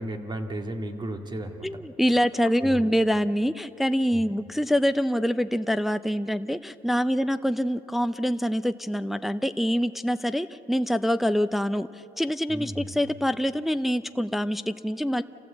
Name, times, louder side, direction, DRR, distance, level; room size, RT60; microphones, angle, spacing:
voice 1, 0.0-1.7 2.6-2.9 4.1-4.2 12.5-12.9, right 1 dB, 25° right, 5 dB, 2.0 m, -34 dB
voice 2, 1.6-15.2, equal, ahead, 11 dB, 0.5 m, -25 dB
28.0 x 16.0 x 8.1 m, 2.9 s
cardioid pair, 110°, 17 cm